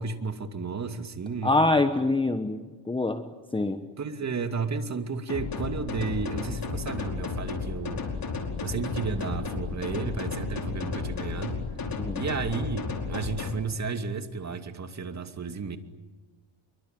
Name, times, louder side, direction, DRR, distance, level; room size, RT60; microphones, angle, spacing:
voice 1, 0.0-1.6 4.0-8.0 8.6-11.6 12.2-15.8, right 4 dB, 35° right, 7 dB, 2.6 m, -32 dB
voice 2, 1.4-3.2 3.5-3.8 12.0-12.2, left 2 dB, 10° left, 8 dB, 1.2 m, -25 dB
sound 1, 5.3-13.5, left 4 dB, 45° left, 5.0 m, -33 dB
27.5 x 23.5 x 9.2 m, 1.2 s
cardioid pair, 110°, 49 cm